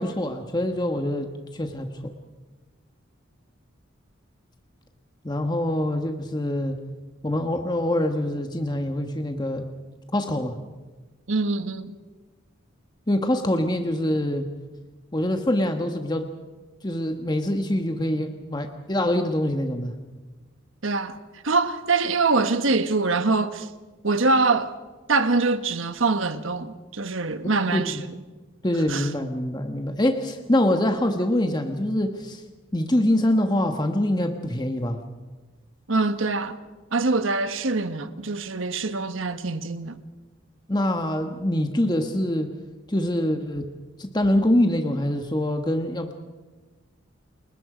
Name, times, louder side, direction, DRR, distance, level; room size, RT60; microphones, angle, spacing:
voice 1, 0.0-1.9 5.2-6.8 7.2-9.7 10.1-10.6 13.1-14.5 15.1-16.2 16.8-19.9 27.7-28.0 28.6-32.4 32.7-35.0 40.7-42.5 42.9-43.7 44.0-46.1, left 1 dB, 20° left, 1.4 m, -24 dB
voice 2, 11.3-12.0 20.8-21.2 21.4-23.7 24.0-24.8 25.1-28.2 28.9-29.1 35.9-36.6 36.9-39.9, right 3 dB, 80° right, 1.3 m, -24 dB
29.5 x 21.0 x 5.1 m
head